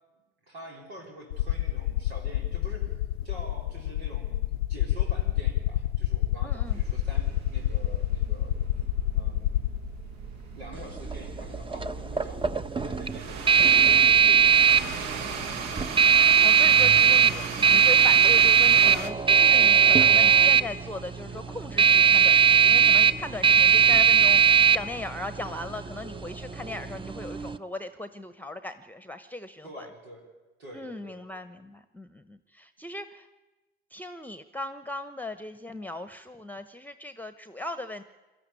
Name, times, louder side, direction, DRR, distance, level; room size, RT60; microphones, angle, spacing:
voice 1, 0.4-3.0 3.2-8.8 9.1-9.6 10.5-15.3 29.6-30.3 30.6-31.2, right 1 dB, 85° right, -2 dB, 3.8 m, -46 dB
sound 1, 1.3-10.1 11.2-11.3 13.5-13.6 13.8-16.4, left 13 dB, 90° left, 0.6 m, -28 dB
voice 2, 6.4-6.8 16.2-29.9 30.7-33.3 33.9-38.0, left 2 dB, 5° left, 11 dB, 1.0 m, -38 dB
sound 2, 6.6-19.1, right 6 dB, 65° right, 1.6 m, -38 dB
sound 3, 10.7-27.6, right 8 dB, 15° right, 0.9 m, -20 dB
22.0 x 13.5 x 9.7 m, 1.2 s
hypercardioid pair, 60°, 31 cm